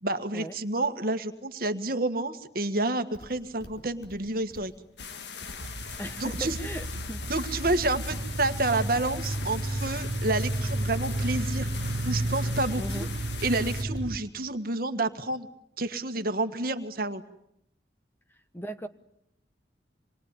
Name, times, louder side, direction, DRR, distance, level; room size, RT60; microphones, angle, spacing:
voice 1, 0.0-4.7 5.6-5.8 6.2-6.6 7.3-11.7 12.0-13.1 13.4-15.5 15.8-17.2, right 2 dB, 50° right, 8 dB, 1.7 m, -29 dB
Livestock farm animals working animals, 3.1-14.0, equal, 85° left, 4.4 m, -47 dB
sound 1, 5.0-13.8, left 7 dB, 70° left, 1.6 m, -41 dB
sound 2, 5.6-14.2, right 1 dB, 85° right, 1.4 m, -32 dB
voice 2, 6.0-7.2 12.8-13.1 18.5-18.9, equal, 10° left, 8 dB, 1.2 m, -37 dB
27.0 x 22.0 x 9.9 m, 0.78 s
head